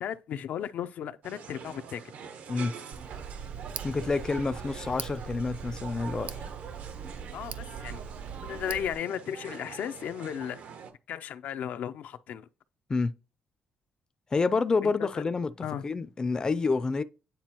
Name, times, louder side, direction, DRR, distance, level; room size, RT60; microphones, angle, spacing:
voice 1, 0.0-2.0 7.3-8.0 8.4-10.6 11.1-12.5 14.8-15.1 15.6-15.8, left 9 dB, 75° left, 0.5 m, -35 dB
sound 1, 1.2-10.9, right 6 dB, 75° right, 1.0 m, -44 dB
Tick, 2.9-9.0, right 7 dB, 55° right, 0.6 m, -40 dB
voice 2, 3.8-6.5 12.9-13.1 14.3-15.5 15.8-17.0, left 4 dB, 25° left, 0.5 m, -28 dB
9.2 x 4.2 x 3.0 m
cardioid pair, 115°, 3 cm